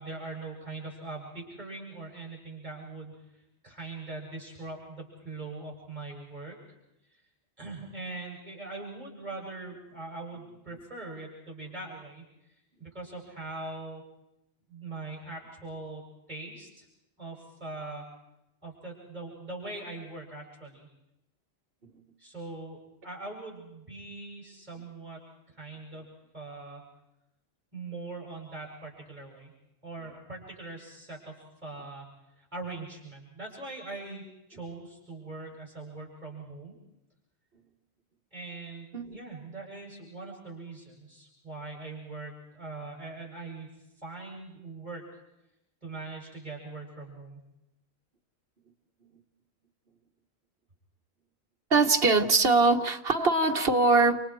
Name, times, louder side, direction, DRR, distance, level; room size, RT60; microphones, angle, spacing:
voice 1, 0.0-6.6 7.1-7.2 7.6-14.0 14.7-16.9 17.2-18.0 18.6-20.9 22.2-25.2 25.5-26.1 26.3-26.8 27.7-29.5 29.8-32.1 32.4-34.2 34.5-36.8 38.3-43.7 44.0-45.2 45.8-47.4, right 3 dB, 40° right, -2 dB, 8.2 m, -42 dB
voice 2, 51.7-54.2, right 3 dB, 60° right, 4 dB, 1.8 m, -22 dB
30.0 x 28.5 x 4.8 m, 0.89 s
omnidirectional pair, 1.1 m